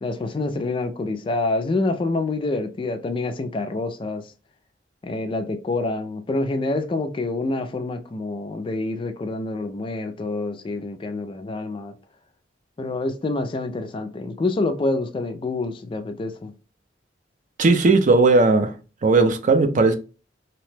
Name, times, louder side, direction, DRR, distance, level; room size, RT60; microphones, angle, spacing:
voice 1, 0.0-4.2 5.0-11.9 12.8-16.5, left 2 dB, 30° left, 0.3 m, -27 dB
voice 2, 17.6-18.7 19.0-19.9, right 3 dB, 45° right, 0.4 m, -17 dB
2.8 x 2.1 x 3.2 m
head